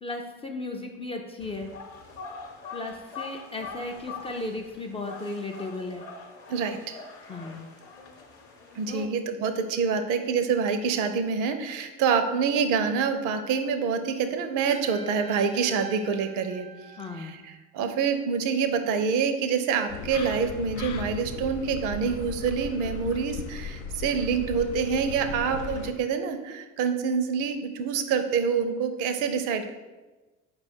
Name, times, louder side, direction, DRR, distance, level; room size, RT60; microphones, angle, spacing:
voice 1, 0.0-1.7 2.7-6.1 7.3-7.7 8.9-9.1 17.0-17.5, left 2 dB, 15° left, 2 dB, 0.3 m, -35 dB
sound 1, 1.4-9.1, left 5 dB, 40° left, 0.8 m, -43 dB
voice 2, 6.5-7.0 8.7-16.7 17.2-29.7, right 6 dB, 55° right, 9 dB, 0.5 m, -26 dB
Trumpet, 14.7-17.5, right 4 dB, 90° right, 0.7 m, -45 dB
sound 2, 19.9-25.9, left 6 dB, 75° left, 0.5 m, -37 dB
4.3 x 2.3 x 4.2 m, 1.2 s
hypercardioid pair, 60°, 37 cm